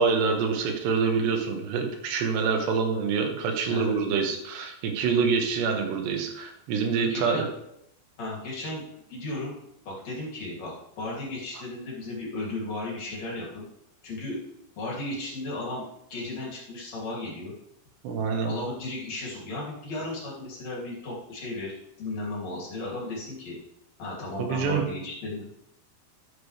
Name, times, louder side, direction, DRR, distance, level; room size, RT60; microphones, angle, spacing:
voice 1, 0.0-7.4 18.0-18.5 24.4-24.8, right 5 dB, 80° right, 4 dB, 3.4 m, -26 dB
voice 2, 3.7-4.2 6.9-7.5 8.2-8.8 9.1-9.5 9.8-10.7 11.0-13.7 14.0-14.4 14.8-15.8 16.1-17.5 18.4-23.6 24.0-25.5, left 2 dB, 45° left, -4 dB, 3.4 m, -35 dB
13.0 x 7.1 x 3.3 m, 0.80 s
omnidirectional pair, 4.9 m